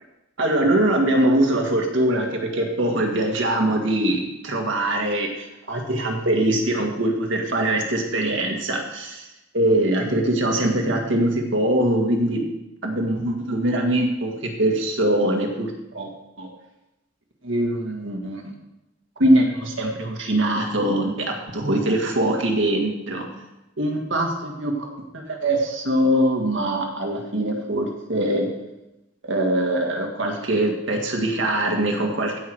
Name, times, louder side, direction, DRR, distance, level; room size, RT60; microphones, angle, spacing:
voice 1, 0.4-9.3 9.5-12.4 12.8-16.1 16.4-16.5 17.4-18.5 19.2-23.3 23.8-24.9 25.1-28.5 29.2-32.4, right 1 dB, 70° right, 1 dB, 1.9 m, -22 dB
15.5 x 5.9 x 4.7 m, 0.94 s
head